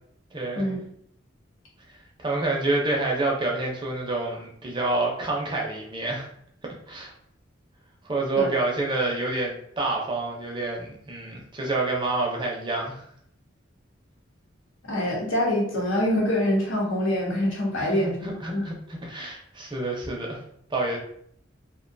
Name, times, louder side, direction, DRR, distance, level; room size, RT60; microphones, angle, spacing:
voice 1, 0.3-0.7 2.2-6.3 6.9-7.1 8.0-13.1 17.8-20.4 20.7-21.0, right 2 dB, 25° right, -1 dB, 0.5 m, -28 dB
voice 2, 14.8-18.6, left 1 dB, 90° left, -3 dB, 0.9 m, -25 dB
2.4 x 2.2 x 2.5 m, 0.66 s
head